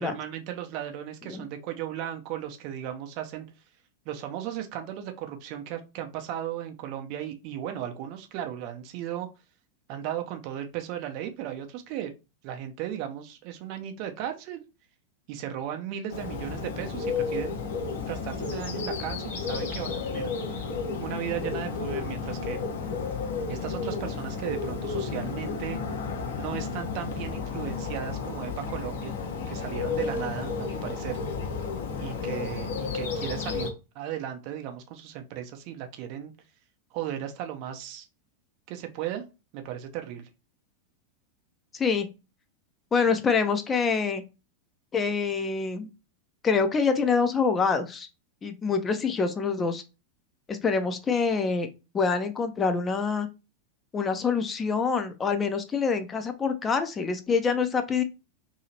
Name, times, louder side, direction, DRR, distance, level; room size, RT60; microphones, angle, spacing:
voice 1, 0.0-3.5 4.1-9.3 9.9-12.1 12.4-14.6 15.3-17.6 18.1-20.3 21.0-22.6 23.5-25.8 26.4-29.1 29.5-31.2 32.0-36.3 36.9-38.1 38.7-39.2 39.5-40.3, right 10 dB, 45° right, 6 dB, 0.5 m, -36 dB
Bird, 16.1-33.7, left 5 dB, 60° left, 0.7 m, -32 dB
voice 2, 41.7-42.1 42.9-44.2 44.9-45.9 46.4-48.1 48.4-49.8 50.5-51.7 51.9-53.3 53.9-58.0, left 5 dB, 20° left, 8 dB, 0.4 m, -26 dB
2.8 x 2.7 x 2.8 m, 0.29 s
figure-of-eight pair, 90°, 0 cm